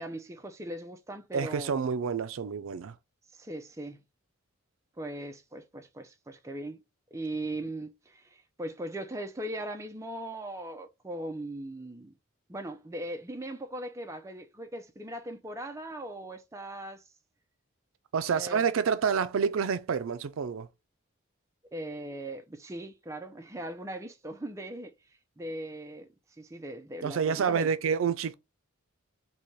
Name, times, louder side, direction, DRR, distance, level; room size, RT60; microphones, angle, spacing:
voice 1, 0.0-1.8 3.4-4.0 5.0-6.8 7.1-12.1 12.5-17.0 18.3-18.7 21.7-24.9 25.4-26.1 26.4-27.7, right 1 dB, 15° right, 0.4 m, -39 dB
voice 2, 1.3-2.9 18.1-20.7 27.0-28.3, right 6 dB, 75° right, 0.4 m, -28 dB
4.1 x 2.2 x 3.1 m
head